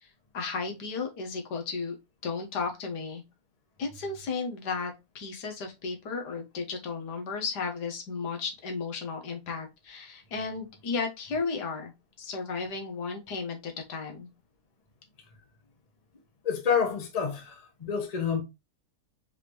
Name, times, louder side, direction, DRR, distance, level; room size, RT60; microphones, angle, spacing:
voice 1, 0.3-2.0 2.2-3.2 3.8-11.9 12.2-14.3, left 4 dB, 90° left, 1.7 m, -34 dB
voice 2, 16.4-18.4, left 7 dB, 30° left, 1.0 m, -28 dB
4.7 x 3.5 x 3.0 m
omnidirectional pair, 1.7 m